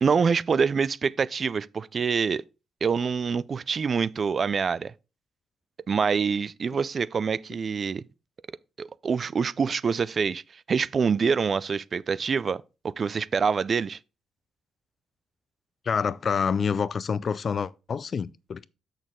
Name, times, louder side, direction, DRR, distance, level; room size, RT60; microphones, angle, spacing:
voice 1, 0.0-2.4 2.8-4.9 5.9-8.0 8.8-14.0, right 5 dB, 40° right, 0.3 m, -26 dB
voice 2, 15.9-18.6, left 6 dB, 45° left, 0.3 m, -27 dB
6.5 x 6.4 x 3.7 m
cardioid pair, 90°, 0 cm